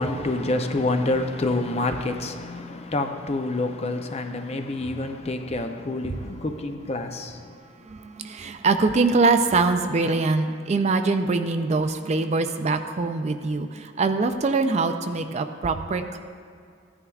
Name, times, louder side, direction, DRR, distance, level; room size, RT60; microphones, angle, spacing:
voice 1, 0.0-7.3, left 2 dB, 30° left, 6 dB, 0.6 m, -27 dB
voice 2, 7.8-16.2, right 3 dB, 35° right, 8 dB, 0.4 m, -23 dB
15.0 x 9.9 x 2.4 m, 2.3 s
head